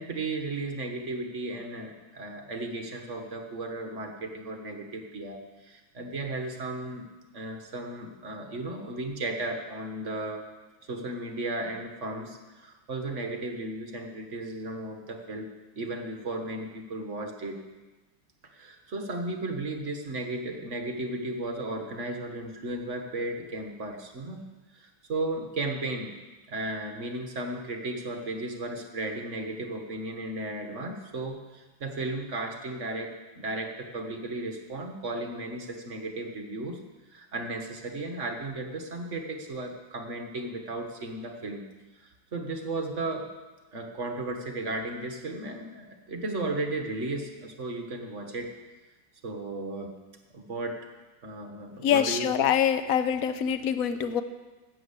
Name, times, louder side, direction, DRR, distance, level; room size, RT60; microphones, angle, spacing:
voice 1, 0.0-7.1 7.3-10.4 10.8-17.6 18.5-24.4 24.7-26.1 26.5-36.8 37.1-41.6 41.9-43.3 43.7-48.5 49.2-50.0 50.3-50.8 51.2-52.3, right 2 dB, 40° right, 4 dB, 1.4 m, -35 dB
voice 2, 51.8-54.2, left 9 dB, 65° left, 10 dB, 0.9 m, -25 dB
12.0 x 7.7 x 8.2 m, 1.2 s
omnidirectional pair, 2.3 m